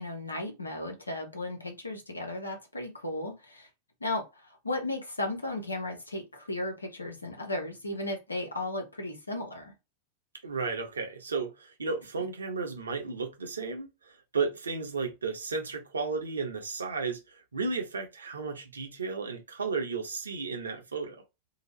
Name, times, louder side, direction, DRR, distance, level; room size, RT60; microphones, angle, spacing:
voice 1, 0.0-3.7 4.0-9.7, left 2 dB, 80° left, 0.9 m, -35 dB
voice 2, 10.4-21.2, right 4 dB, 75° right, 0.8 m, -34 dB
2.8 x 2.4 x 3.1 m
figure-of-eight pair, 90°, 0 cm